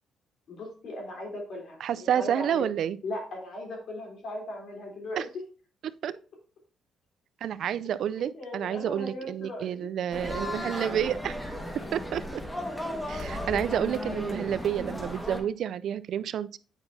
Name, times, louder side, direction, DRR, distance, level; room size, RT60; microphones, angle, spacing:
voice 1, 0.5-2.7 3.0-5.3 8.2-9.9 10.7-11.0 11.7-11.9, left 1 dB, 65° left, 3.4 m, -38 dB
voice 2, 1.8-3.0 6.0-6.1 7.4-11.4 11.9-12.4 13.1-16.6, right 9 dB, 70° right, 0.4 m, -29 dB
sound 1, 10.1-15.4, left 1 dB, 10° left, 1.5 m, -35 dB
8.8 x 5.8 x 2.7 m
cardioid pair, 90°, 0 cm